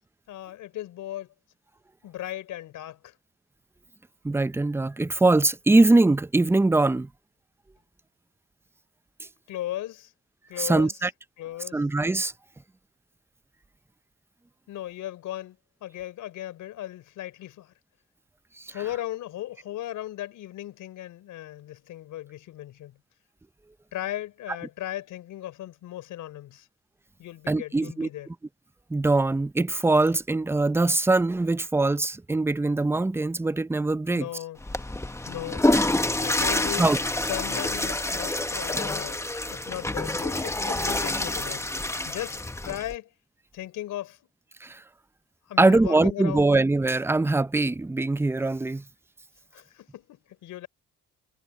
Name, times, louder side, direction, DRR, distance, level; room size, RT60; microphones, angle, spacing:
voice 1, 0.3-1.3 2.0-3.1 9.5-10.1 10.5-11.0 11.4-11.8 14.7-17.7 18.7-23.0 23.9-26.7 27.2-28.3 34.1-34.6 35.3-35.7 36.2-36.9 37.1-39.2 39.5-41.7 42.0-43.1 43.5-44.2 45.5-46.5 49.5-50.7, left 13 dB, 85° left, 4.3 m, -37 dB
voice 2, 4.2-7.1 10.6-11.1 11.7-12.3 18.6-18.7 27.5-28.1 28.9-34.3 36.8-37.0 44.6-44.8 45.6-48.8, right 2 dB, 10° right, 0.5 m, -22 dB
Water / Toilet flush, 34.6-42.9, left 2 dB, 10° left, 1.3 m, -27 dB
cardioid pair, 90°, 30 cm